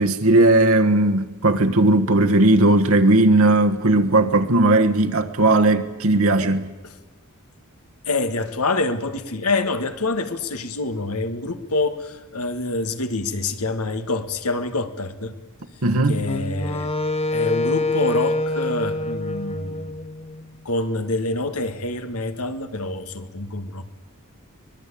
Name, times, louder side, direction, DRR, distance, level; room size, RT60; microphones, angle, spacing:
voice 1, 0.0-6.7 15.8-16.2, right 2 dB, 70° right, 1.4 m, -17 dB
voice 2, 8.1-15.4 16.1-16.9 17.3-19.9 20.7-23.8, left 2 dB, 90° left, 1.9 m, -26 dB
Wind instrument woodwind instrument, 16.2-20.4, left 2 dB, 30° left, 1.1 m, -25 dB
24.5 x 20.5 x 8.5 m
head